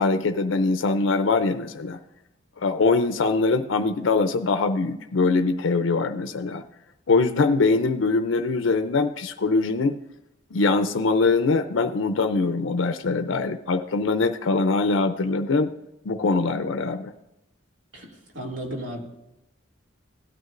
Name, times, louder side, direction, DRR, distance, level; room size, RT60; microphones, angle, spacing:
voice 1, 0.0-2.0 2.6-6.6 7.1-10.0 10.5-15.7 16.0-17.1, left 3 dB, 75° left, 9 dB, 0.5 m, -22 dB
voice 2, 18.3-19.0, right 1 dB, 75° right, -1 dB, 2.4 m, -33 dB
16.5 x 9.4 x 2.5 m, 0.90 s
head